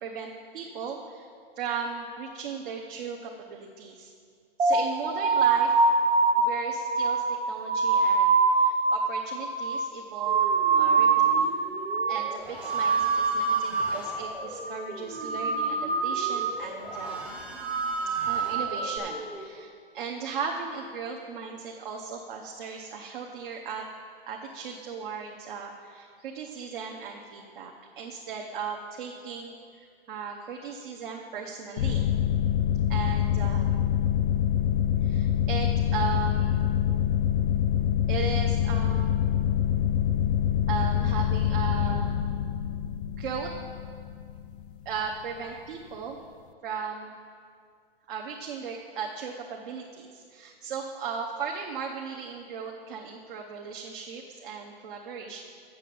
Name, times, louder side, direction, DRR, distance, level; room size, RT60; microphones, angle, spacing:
voice 1, 0.0-1.3 1.6-4.1 4.6-5.9 6.4-11.5 12.1-17.4 18.2-23.8 24.3-32.1 32.9-33.9 35.0-36.7 38.1-39.1 40.7-42.2 43.1-43.5 44.8-46.2 46.6-47.1 48.1-55.4, right 6 dB, 55° right, 0 dB, 0.9 m, -37 dB
sound 1, 4.6-11.6 11.8-12.4 12.6-14.1 14.4-14.8 15.1-16.6 16.9-17.3 17.6-19.0, right 4 dB, 80° right, 1.2 m, -24 dB
sound 2, 10.3-19.4, right 1 dB, 5° right, 0.7 m, -41 dB
sound 3, 31.8-45.0, left 9 dB, 55° left, 0.5 m, -26 dB
7.1 x 6.7 x 7.7 m, 2.2 s
hypercardioid pair, 145°, 31 cm